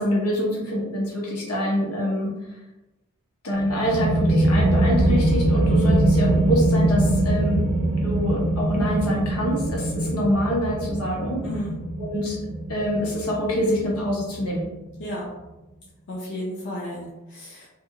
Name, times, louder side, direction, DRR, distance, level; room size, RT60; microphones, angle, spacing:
voice 1, 0.0-2.3 3.4-7.6 8.0-11.4 12.0-12.4 12.7-14.6, equal, 80° left, -3 dB, 0.9 m, -25 dB
sound 1, 3.5-14.9, right 1 dB, 60° right, 0.4 m, -22 dB
voice 2, 11.4-11.7 15.0-15.3 16.1-17.7, left 1 dB, 55° left, -4 dB, 0.5 m, -33 dB
2.4 x 2.4 x 2.8 m, 1.0 s
head